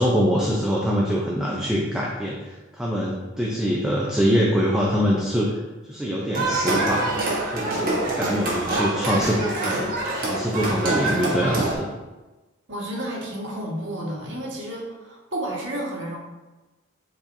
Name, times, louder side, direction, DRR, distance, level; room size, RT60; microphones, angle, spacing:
voice 1, 0.0-5.6 5.9-7.2 7.5-9.9 10.1-11.9, equal, 5° right, -4 dB, 0.6 m, -24 dB
sound 1, 6.3-11.7, right 2 dB, 45° right, 1.3 m, -25 dB
voice 2, 12.7-16.2, right 1 dB, 70° right, -3 dB, 1.6 m, -31 dB
8.6 x 4.2 x 2.7 m, 1.2 s
head